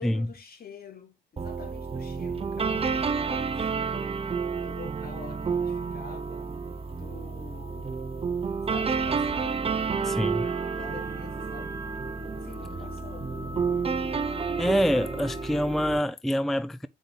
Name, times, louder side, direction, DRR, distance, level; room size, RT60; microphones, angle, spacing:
voice 1, 0.0-6.5 6.9-7.9 8.6-9.9 10.7-11.8 12.3-13.6, left 5 dB, 50° left, 2.9 m, -47 dB
sound 1, 1.4-16.0, right 5 dB, 30° right, 0.8 m, -30 dB
sound 2, 5.1-16.0, left 2 dB, 70° left, 3.3 m, -43 dB
voice 2, 10.0-10.5 14.6-16.9, equal, ahead, 0.4 m, -26 dB
7.4 x 5.3 x 3.4 m
cardioid pair, 90°, 20 cm